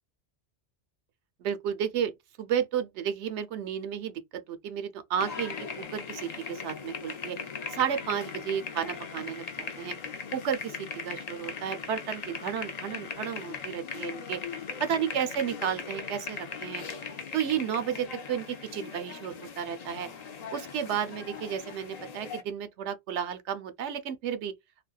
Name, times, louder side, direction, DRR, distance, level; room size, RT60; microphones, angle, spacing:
voice 1, 1.4-2.1 2.4-4.2 4.5-7.4 7.7-9.9 10.3-14.4 14.8-16.8 17.3-20.1 20.5-24.5, right 8 dB, 85° right, 0.9 m, -32 dB
sound 1, 5.2-22.4, left 5 dB, 45° left, 0.6 m, -39 dB
3.4 x 2.2 x 2.3 m
omnidirectional pair, 1.1 m